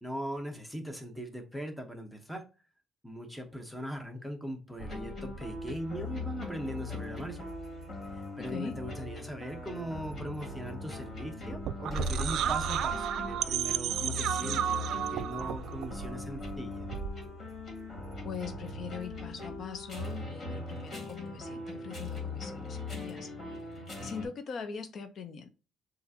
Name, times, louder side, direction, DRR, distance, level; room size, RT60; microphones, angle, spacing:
voice 1, 0.0-2.4 3.0-7.5 8.1-16.9, equal, ahead, 0.9 m, -40 dB
sound 1, 4.8-24.3, left 2 dB, 30° left, 2.1 m, -40 dB
voice 2, 8.4-8.8 18.2-23.3 24.0-25.5, left 6 dB, 50° left, 0.5 m, -41 dB
sound 2, 11.5-17.3, right 10 dB, 75° right, 0.3 m, -33 dB
7.0 x 2.5 x 2.7 m
cardioid pair, 145°, 0 cm